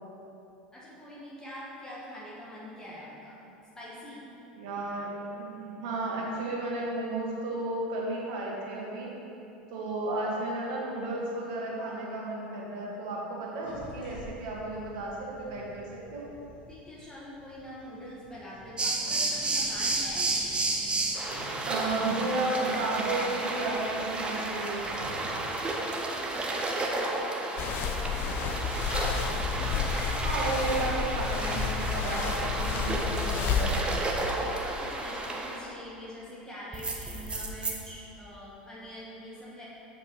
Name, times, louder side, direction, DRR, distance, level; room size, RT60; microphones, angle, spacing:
voice 1, 0.7-3.5 3.8-4.2 16.7-20.4 21.7-21.9 25.4-28.9 34.2-39.7, left 1 dB, 15° left, -7 dB, 1.9 m, -44 dB
voice 2, 4.6-9.1 9.7-16.3 21.7-24.9 30.2-33.9, right 2 dB, 60° right, -3 dB, 2.0 m, -33 dB
sound 1, 13.6-18.7 19.0-25.6, left 1 dB, 75° left, 2.1 m, -47 dB
sound 2, 18.8-35.6 36.7-37.7, right 2 dB, 20° right, 1.0 m, -32 dB
sound 3, 27.6-33.8, left 6 dB, 45° left, 0.6 m, -31 dB
7.6 x 6.7 x 4.9 m, 2.9 s
figure-of-eight pair, 80°, 5 cm